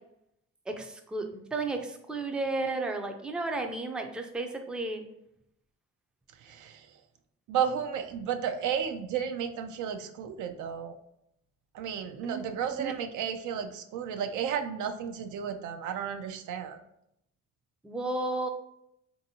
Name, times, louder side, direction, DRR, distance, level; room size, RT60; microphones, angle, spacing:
voice 1, 0.7-5.1 12.2-12.4 12.8-12.9 17.8-18.5, right 2 dB, 5° right, 4 dB, 0.4 m, -33 dB
voice 2, 6.4-6.9 7.5-11.0 11.7-16.8, right 8 dB, 75° right, 7 dB, 0.5 m, -33 dB
3.5 x 2.6 x 2.7 m, 0.78 s
cardioid pair, 90°, 30 cm